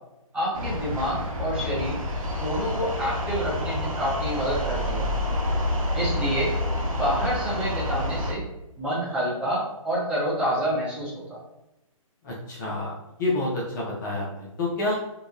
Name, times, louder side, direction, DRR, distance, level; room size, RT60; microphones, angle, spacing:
voice 1, 0.3-2.0 2.4-5.1 5.9-6.5 6.9-8.4 8.8-11.4, equal, 5° right, -9 dB, 0.7 m, -28 dB
sound 1, 0.5-8.3, left 1 dB, 75° right, 0.6 m, -28 dB
voice 2, 12.2-12.9 13.2-15.0, left 2 dB, 35° left, -4 dB, 0.5 m, -28 dB
2.7 x 2.1 x 2.3 m, 0.95 s
hypercardioid pair, 140°, 18 cm